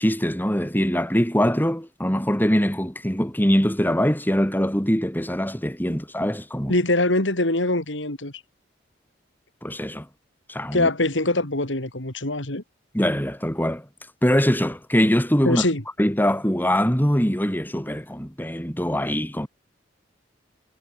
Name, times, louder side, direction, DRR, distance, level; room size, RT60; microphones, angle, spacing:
voice 1, 0.0-6.7 9.6-10.1 10.5-10.9 12.9-13.8 14.2-15.6 16.0-19.5, equal, 10° left, 6.9 m, -22 dB
voice 2, 6.7-8.3 10.7-12.6 15.4-15.8, left 2 dB, 75° left, 3.9 m, -23 dB
head